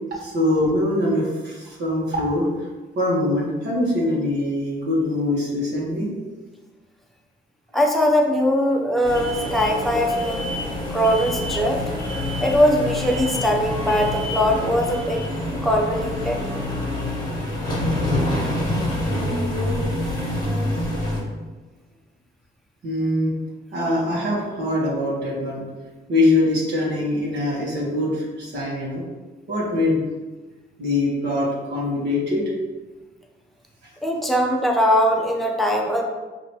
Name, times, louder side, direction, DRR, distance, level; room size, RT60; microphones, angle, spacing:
voice 1, 0.2-2.7 2.9-6.1 22.8-23.3 23.7-25.6 26.1-29.0 29.5-30.0 30.8-32.4, left 1 dB, 60° right, -5 dB, 1.5 m, -23 dB
voice 2, 7.7-10.5 10.9-11.8 12.4-15.2 15.6-16.4 34.0-36.0, equal, ahead, 0 dB, 0.7 m, -21 dB
sound 1, 9.0-21.2, left 1 dB, 20° left, 1.4 m, -26 dB
5.0 x 2.9 x 3.0 m, 1.3 s
cardioid pair, 90°, 20 cm